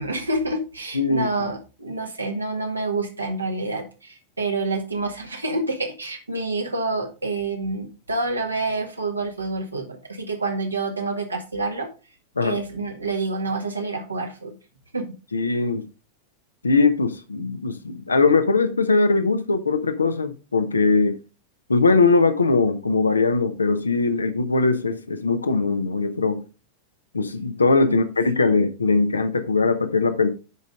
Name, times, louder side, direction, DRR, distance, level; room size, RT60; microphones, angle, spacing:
voice 1, 0.0-11.9 12.4-14.6 14.9-15.1 27.9-28.0, right 2 dB, 80° right, 1.7 m, -28 dB
voice 2, 0.9-1.3 12.4-12.6 15.3-15.8 16.6-21.2 21.7-26.4 27.1-30.3, left 3 dB, 75° left, 1.0 m, -20 dB
9.6 x 5.2 x 3.6 m
figure-of-eight pair, 90°, 0 cm